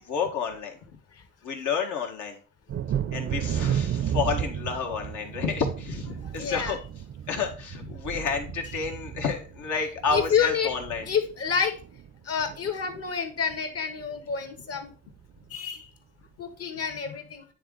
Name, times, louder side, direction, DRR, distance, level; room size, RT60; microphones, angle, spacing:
voice 1, 0.0-1.0 1.4-2.4 3.1-6.8 7.3-11.1, left 5 dB, 75° left, 3 dB, 1.6 m, -30 dB
Thunder, 2.7-12.1 12.4-13.1 13.5-13.6 14.0-14.2, right 9 dB, 45° right, 0.5 m, -33 dB
voice 2, 6.2-6.7 10.1-10.7 11.1-11.8 12.2-14.9 15.5-15.9 16.4-17.4, left 7 dB, 55° left, 7 dB, 1.4 m, -28 dB
9.1 x 3.7 x 3.8 m, 0.38 s
cardioid pair, 90°, 30 cm